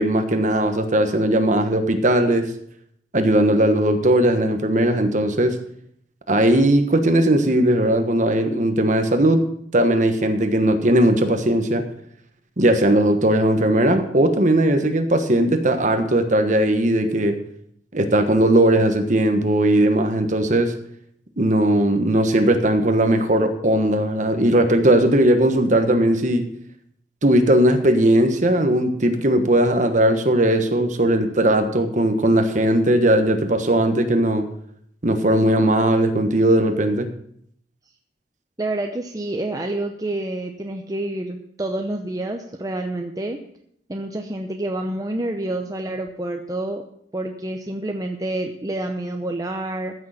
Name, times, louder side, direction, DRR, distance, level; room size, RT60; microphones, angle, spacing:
voice 1, 0.0-2.5 3.1-5.5 6.3-9.4 9.7-11.8 12.6-17.4 17.9-20.7 21.4-26.4 27.2-34.4 35.0-37.1, right 1 dB, 45° right, 7 dB, 1.3 m, -18 dB
voice 2, 38.6-43.4 43.9-46.8 47.1-49.9, right 1 dB, 20° right, 3 dB, 0.7 m, -28 dB
14.0 x 6.6 x 5.7 m, 0.68 s
head